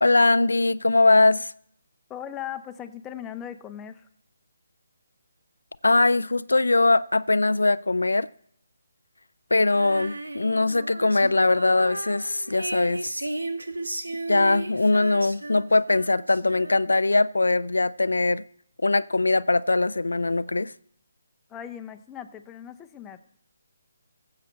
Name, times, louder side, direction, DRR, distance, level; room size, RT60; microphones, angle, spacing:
voice 1, 0.0-1.5 5.8-8.3 9.5-13.1 14.3-18.4 18.8-20.7, left 2 dB, 85° left, 0.3 m, -21 dB
voice 2, 2.1-4.1 21.5-23.2, left 10 dB, 15° left, 0.7 m, -38 dB
Female singing, 9.7-17.1, right 2 dB, 90° right, 1.2 m, -34 dB
16.0 x 7.7 x 4.3 m
figure-of-eight pair, 150°, 0 cm